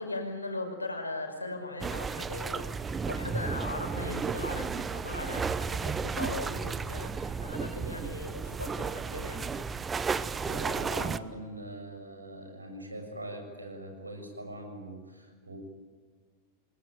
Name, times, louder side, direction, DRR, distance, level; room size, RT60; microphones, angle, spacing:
voice 1, 0.0-9.7, left 2 dB, 80° left, 5 dB, 5.4 m, -39 dB
sound 1, 1.8-11.2, right 5 dB, 15° right, 1.0 m, -33 dB
voice 2, 10.5-15.6, right 1 dB, 80° right, 4 dB, 7.0 m, -42 dB
29.5 x 21.0 x 9.0 m, 1.5 s
figure-of-eight pair, 90°, 0 cm